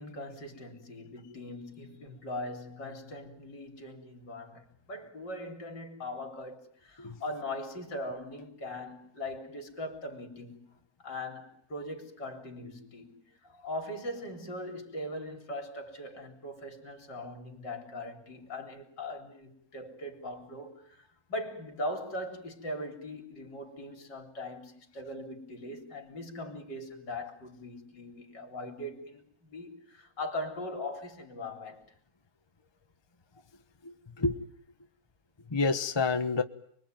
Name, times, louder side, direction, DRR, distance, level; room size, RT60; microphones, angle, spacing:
voice 1, 0.0-10.6 11.0-13.2 13.6-31.9, left 1 dB, 65° left, 4.3 m, -40 dB
voice 2, 33.8-34.4 35.5-36.4, left 4 dB, 20° left, 0.9 m, -29 dB
29.0 x 22.0 x 9.3 m
omnidirectional pair, 2.0 m